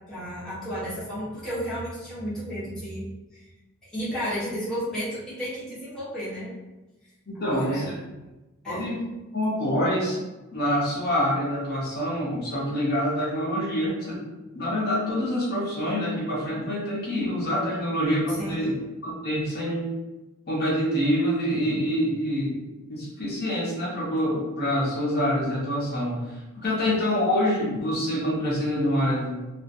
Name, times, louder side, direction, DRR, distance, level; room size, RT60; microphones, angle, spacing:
voice 1, 0.1-3.0 3.3-3.4 3.9-6.5 7.3-7.9 8.6-8.9 18.3-18.6, equal, 5° left, -12 dB, 0.9 m, -32 dB
voice 2, 7.3-7.8 8.7-9.0 9.3-10.2 10.5-14.2 14.5-18.7 19.0-19.9 20.5-22.6 22.9-29.4, equal, 45° left, -6 dB, 0.7 m, -26 dB
2.4 x 2.4 x 2.5 m, 1.1 s
head